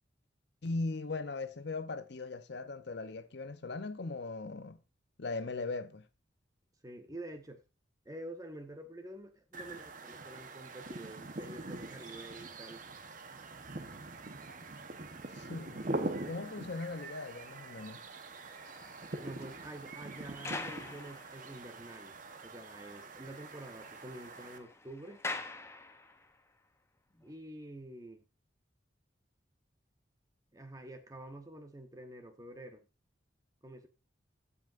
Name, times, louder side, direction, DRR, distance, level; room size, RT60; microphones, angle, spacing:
voice 1, 0.6-4.8 5.2-6.0 15.4-18.0, left 3 dB, 60° left, 0.7 m, -39 dB
voice 2, 6.8-7.6 8.0-12.8 19.2-25.2 27.2-28.2 30.5-32.9 33.6-33.9, right 1 dB, 20° right, 1.0 m, -48 dB
sound 1, 9.5-24.6, right 2 dB, 45° right, 1.0 m, -43 dB
sound 2, 18.3-22.0 22.3-22.4 22.8-22.9 23.1-26.4 27.1-27.3, left 2 dB, 15° left, 0.7 m, -46 dB
15.0 x 5.5 x 2.5 m
head